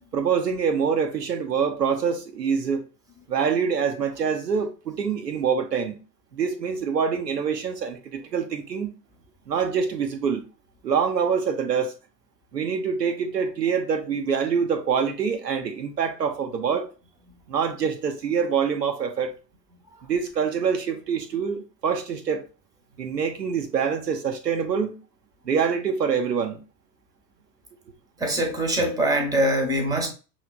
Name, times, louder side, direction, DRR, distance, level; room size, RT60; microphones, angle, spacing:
voice 1, 0.1-2.8 3.3-6.0 6.3-8.9 9.5-10.5 10.8-11.9 12.5-16.9 17.5-19.3 20.0-22.4 23.0-25.0 25.5-26.6, right 6 dB, 80° right, 0.8 m, -25 dB
voice 2, 28.2-30.1, right 1 dB, 10° right, 1.0 m, -23 dB
5.6 x 3.0 x 2.2 m
figure-of-eight pair, 85°, 48 cm